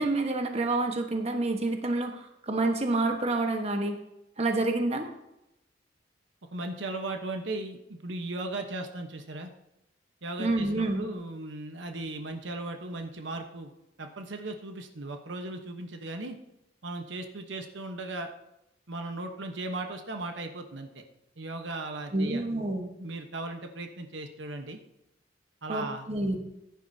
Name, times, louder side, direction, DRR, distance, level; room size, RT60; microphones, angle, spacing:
voice 1, 0.0-4.0 4.4-5.1 10.4-11.0 22.1-22.9 25.7-26.4, right 2 dB, 35° right, 4 dB, 1.3 m, -28 dB
voice 2, 6.5-9.5 10.2-13.7 14.0-16.4 16.8-18.3 18.9-21.0 21.4-22.4 23.0-24.8 25.6-26.1, right 2 dB, 75° right, 5 dB, 1.1 m, -37 dB
15.5 x 10.0 x 2.8 m, 0.88 s
head